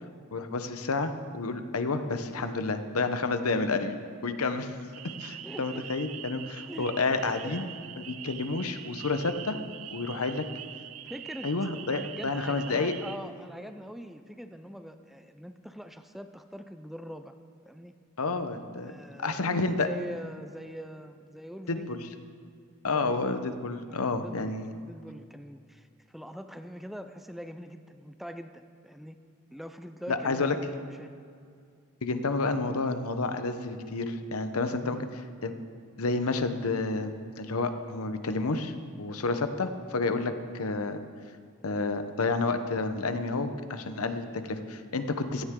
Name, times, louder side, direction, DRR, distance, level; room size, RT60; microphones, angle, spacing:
voice 1, 0.3-4.0 4.2-4.7 5.0-7.7 8.0-9.6 9.9-10.4 11.4-12.9 18.2-18.9 19.2-19.9 21.7-22.1 22.8-24.7 30.1-30.5 32.0-35.5 36.0-41.0 41.6-45.4, left 3 dB, 80° left, 9 dB, 0.9 m, -30 dB
sound 1, 4.9-13.2, right 11 dB, 70° right, 0.6 m, -44 dB
voice 2, 5.4-5.9 6.7-7.8 11.1-11.5 11.9-17.3 17.6-18.0 18.9-21.9 22.9-23.3 23.9-29.2 29.5-31.1 34.8-35.1, equal, ahead, 8 dB, 0.4 m, -43 dB
16.5 x 13.0 x 3.7 m, 2.3 s
head